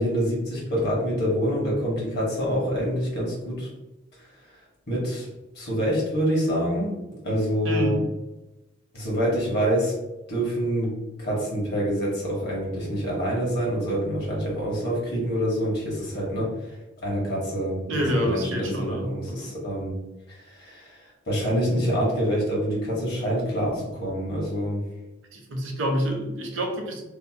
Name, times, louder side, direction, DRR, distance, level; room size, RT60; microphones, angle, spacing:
voice 1, 0.0-3.7 4.9-5.3 5.6-6.9 7.2-8.0 8.9-9.9 10.3-10.9 11.2-16.5 17.0-19.9 20.3-21.0 21.3-24.8, equal, 55° left, -4 dB, 1.0 m, -26 dB
voice 2, 7.6-8.0 17.9-19.5 25.3-27.0, equal, 70° right, 1 dB, 0.6 m, -27 dB
2.6 x 2.0 x 2.7 m, 1.0 s
head